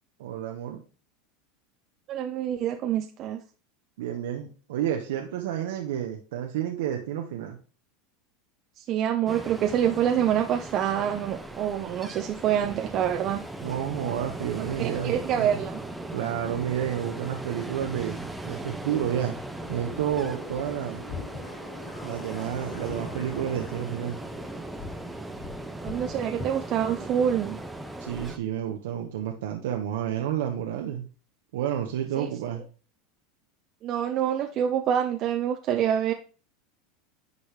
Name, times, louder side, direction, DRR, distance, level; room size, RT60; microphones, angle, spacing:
voice 1, 0.2-0.8 4.0-7.6 13.6-15.6 16.1-19.4 19.7-21.0 22.0-24.2 28.0-31.1 31.5-32.6, right 10 dB, 80° right, 1.0 m, -30 dB
voice 2, 2.1-3.4 8.8-13.4 14.8-15.8 25.8-27.6 32.2-32.3 33.8-36.1, right 9 dB, 45° right, 0.7 m, -26 dB
Ocean, 9.3-28.4, right 2 dB, 5° right, 0.9 m, -38 dB
sound 1, 19.6-27.1, left 3 dB, 50° left, 3.8 m, -43 dB
10.5 x 4.1 x 3.3 m
supercardioid pair, 110°, 0 cm